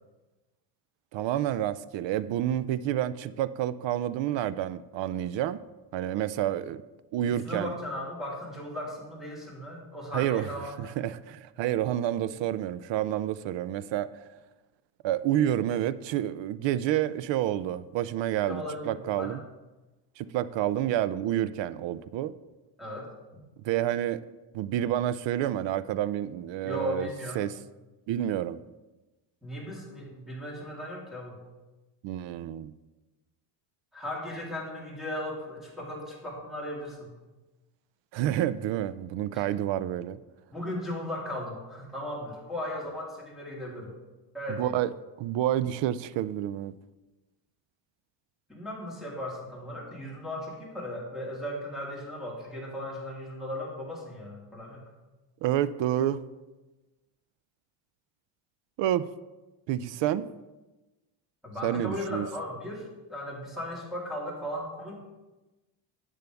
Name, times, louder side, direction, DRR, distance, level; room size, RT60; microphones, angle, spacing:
voice 1, 1.1-5.6 5.9-6.8 7.1-7.7 10.1-10.5 10.8-14.3 15.0-19.4 20.2-22.3 23.6-24.2 24.5-27.1 27.4-27.6 28.1-28.6 32.0-32.7 38.1-40.2 44.5-44.9 45.2-46.7 55.4-56.2 58.8-59.1 59.7-60.3 61.6-62.3, right 12 dB, 65° right, 16 dB, 0.6 m, -29 dB
voice 2, 7.3-10.9 18.5-19.4 22.8-23.1 26.6-27.4 29.4-31.4 33.9-37.1 39.3-39.4 40.5-43.9 44.3-44.8 48.5-54.9 61.4-65.0, left 1 dB, ahead, -5 dB, 3.3 m, -37 dB
10.5 x 8.4 x 3.5 m, 1.1 s
cardioid pair, 120°, 48 cm